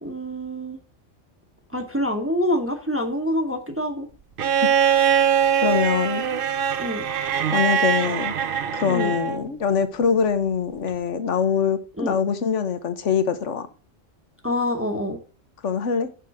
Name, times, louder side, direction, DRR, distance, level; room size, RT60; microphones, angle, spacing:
voice 1, 0.0-0.8 1.7-4.1 6.8-7.1 8.9-9.1 12.0-12.2 14.4-15.2, left 1 dB, 10° right, 1.0 m, -26 dB
Bowed string instrument, 4.4-9.4 10.9-11.0, right 8 dB, 55° right, 0.7 m, -22 dB
voice 2, 5.6-6.2 7.5-8.3 8.7-13.7 15.6-16.1, left 7 dB, 75° left, 1.3 m, -23 dB
6.7 x 5.9 x 4.8 m
omnidirectional pair, 1.3 m